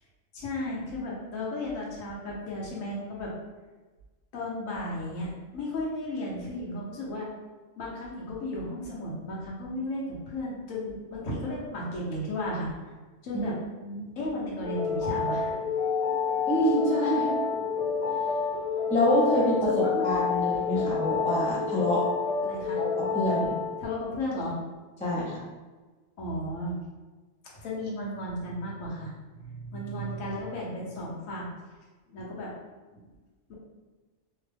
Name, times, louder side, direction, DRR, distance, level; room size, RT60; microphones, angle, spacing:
voice 1, 0.3-3.3 4.3-7.3 7.8-12.7 13.2-13.5 14.2-15.6 19.7-20.1 20.7-20.9 22.4-22.8 23.8-24.5 26.2-26.8 27.6-29.1 29.4-31.6 32.1-32.5 32.9-33.1 33.5-33.6, left 1 dB, 80° left, -4 dB, 1.2 m, -34 dB
voice 2, 13.9-14.2 16.5-17.3 18.9-22.0 22.8-23.6 25.0-25.4, equal, 10° left, -5 dB, 0.3 m, -26 dB
sound 1, 14.6-23.8, left 5 dB, 55° left, 1.0 m, -29 dB
2.9 x 2.1 x 3.2 m, 1.3 s
omnidirectional pair, 1.4 m